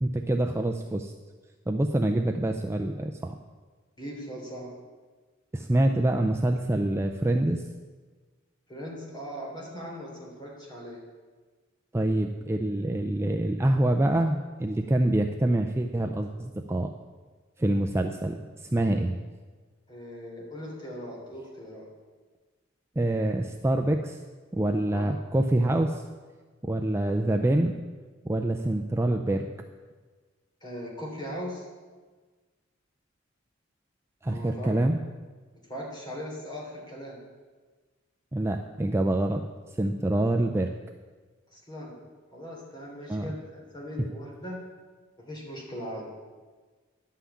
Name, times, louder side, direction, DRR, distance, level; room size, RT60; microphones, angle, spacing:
voice 1, 0.0-1.1 1.7-3.4 5.5-7.6 11.9-16.9 17.6-19.2 23.0-24.2 24.5-26.0 26.6-27.7 28.2-29.5 34.2-35.0 38.3-39.4 39.8-40.7 43.1-43.3, right 1 dB, 15° right, 4 dB, 0.4 m, -26 dB
voice 2, 4.0-4.7 8.7-11.0 19.9-21.9 24.9-25.1 30.6-31.6 34.2-34.7 35.7-37.2 41.5-42.0 42.3-44.6 45.2-46.1, equal, 25° left, -3 dB, 3.4 m, -39 dB
11.0 x 5.8 x 8.4 m, 1.4 s
head